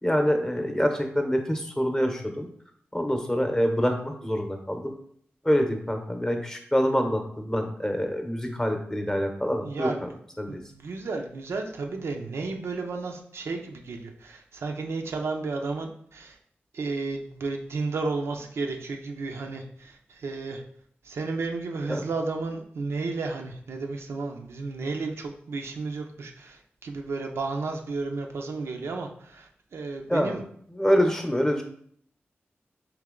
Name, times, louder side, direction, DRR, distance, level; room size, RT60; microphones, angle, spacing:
voice 1, 0.0-2.5 2.9-4.9 5.4-9.9 10.4-10.6 21.9-22.1 30.1-30.3 30.8-31.6, equal, 15° left, 4 dB, 0.8 m, -25 dB
voice 2, 9.6-10.0 10.5-16.4 16.7-20.6 21.0-30.4, right 3 dB, 85° right, 3 dB, 0.5 m, -33 dB
3.3 x 2.9 x 3.7 m, 0.62 s
cardioid pair, 50°, 4 cm